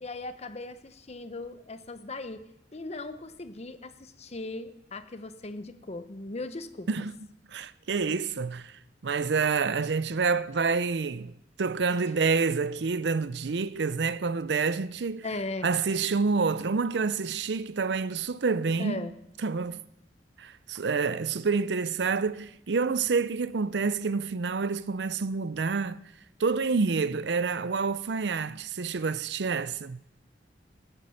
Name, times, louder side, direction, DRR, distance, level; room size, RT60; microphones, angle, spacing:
voice 1, 0.0-7.1 15.2-15.7 18.8-19.1, left 2 dB, 40° left, 0.9 m, -38 dB
voice 2, 7.5-8.7 9.0-15.3 15.6-19.1 19.4-19.8 20.4-26.0 26.4-30.0, right 4 dB, 70° right, 0.6 m, -28 dB
18.0 x 9.3 x 6.5 m
head